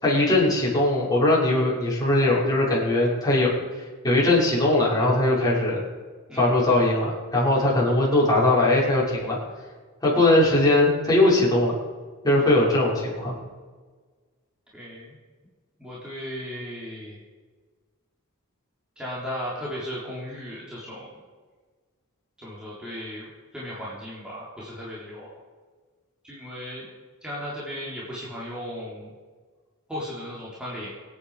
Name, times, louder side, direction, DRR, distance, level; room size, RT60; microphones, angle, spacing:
voice 1, 0.0-3.5 4.0-5.8 6.4-9.4 10.0-11.8 12.2-13.3, left 2 dB, 20° left, -6 dB, 5.9 m, -20 dB
voice 2, 14.7-15.1 15.8-17.2 19.0-21.2 22.4-25.3 26.2-26.9 27.2-29.1 29.9-30.9, equal, 5° right, -7 dB, 3.8 m, -36 dB
25.5 x 9.5 x 5.0 m, 1.4 s
head